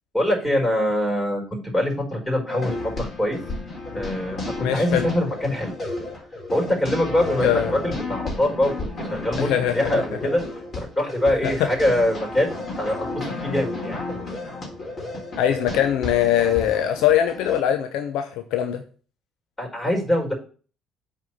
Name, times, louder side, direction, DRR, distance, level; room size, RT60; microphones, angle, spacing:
voice 1, 0.1-3.4 3.9-5.7 6.5-8.7 9.0-10.4 10.8-13.1 13.4-14.0 19.6-20.3, left 1 dB, 15° left, -1 dB, 5.2 m, -24 dB
sound 1, 2.5-17.6, left 2 dB, 40° left, 3.5 m, -32 dB
voice 2, 4.6-5.0 7.4-7.7 9.4-9.9 11.4-11.5 15.4-18.8, left 10 dB, 80° left, 7 dB, 0.8 m, -22 dB
7.6 x 4.7 x 6.9 m, 0.40 s
supercardioid pair, 75°, 0 cm